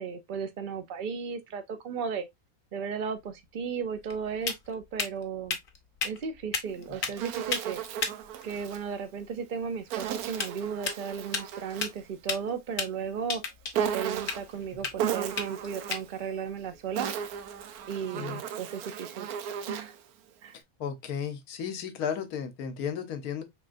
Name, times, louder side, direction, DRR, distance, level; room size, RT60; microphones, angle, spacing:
voice 1, 0.0-2.3 2.7-5.6 6.0-7.8 8.4-13.4 13.9-17.1 17.9-19.3 19.7-20.0 20.4-20.6, right 6 dB, 55° right, 0.6 m, -35 dB
sound 1, 3.2-17.9, left 5 dB, 45° left, 0.8 m, -38 dB
Insect, 6.7-8.8 9.9-12.0 13.7-14.5 15.0-16.1 16.7-20.0, right 9 dB, 90° right, 1.1 m, -35 dB
voice 2, 20.8-23.4, left 7 dB, 85° left, 1.3 m, -34 dB
4.3 x 3.2 x 2.5 m
omnidirectional pair, 1.5 m